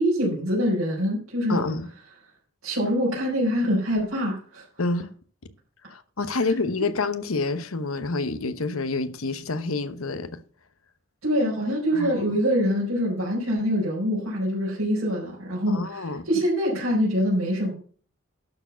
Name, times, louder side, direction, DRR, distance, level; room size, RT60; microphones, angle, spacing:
voice 1, 0.0-1.6 2.6-4.6 6.4-6.5 11.2-17.7, equal, 75° right, 4.9 m, -24 dB
voice 2, 1.5-1.9 4.8-5.1 5.9-10.4 11.9-12.2 15.7-16.2, left 3 dB, 75° left, 1.0 m, -28 dB
12.0 x 4.8 x 7.0 m
head